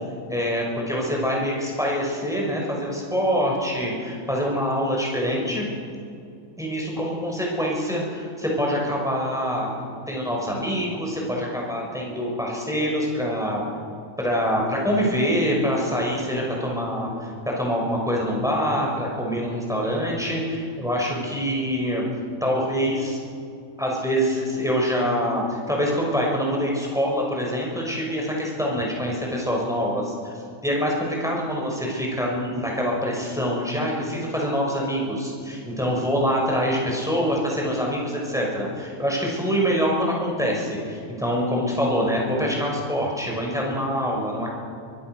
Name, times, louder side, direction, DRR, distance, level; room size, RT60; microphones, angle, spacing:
voice 1, 0.3-5.7 6.6-9.7 10.1-13.7 14.2-22.0 22.4-23.2 23.8-30.3 30.6-44.5, equal, ahead, -2 dB, 6.1 m, -25 dB
24.0 x 23.0 x 6.3 m, 2.5 s
omnidirectional pair, 1.6 m